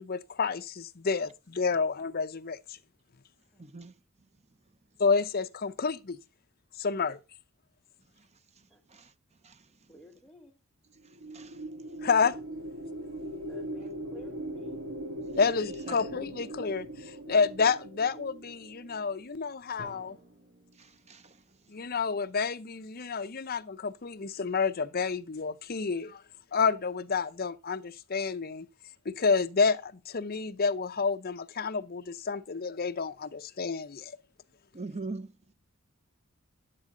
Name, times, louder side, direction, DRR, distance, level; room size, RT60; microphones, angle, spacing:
voice 1, 0.0-2.8 5.0-6.2 6.8-7.2 12.0-12.4 15.4-20.2 21.7-26.2 26.5-28.7 29.0-34.1, left 5 dB, 45° left, 0.7 m, -29 dB
voice 2, 3.6-3.9 8.9-9.1 9.4-9.5 11.3-11.6 20.8-21.3 34.7-35.3, right 3 dB, 30° right, 0.7 m, -41 dB
voice 3, 9.9-10.6 13.5-14.8, equal, ahead, 1.6 m, -53 dB
sound 1, 11.0-19.4, right 1 dB, 80° right, 1.3 m, -40 dB
Drum, 19.8-21.7, equal, 45° right, 2.4 m, -53 dB
10.5 x 8.7 x 3.8 m
head